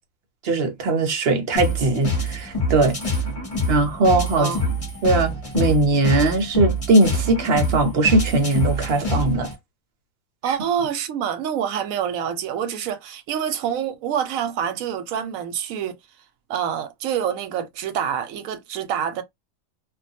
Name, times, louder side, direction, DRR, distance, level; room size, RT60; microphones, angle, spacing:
voice 1, 0.4-3.0 3.7-4.5 5.0-9.5 10.5-10.6, right 2 dB, 55° right, 0.8 m, -20 dB
sound 1, 1.5-9.5, left 1 dB, 30° left, 0.9 m, -26 dB
voice 2, 4.4-4.7 10.4-16.0 16.5-19.2, right 8 dB, 90° right, 1.0 m, -26 dB
2.5 x 2.2 x 2.6 m
omnidirectional pair, 1.4 m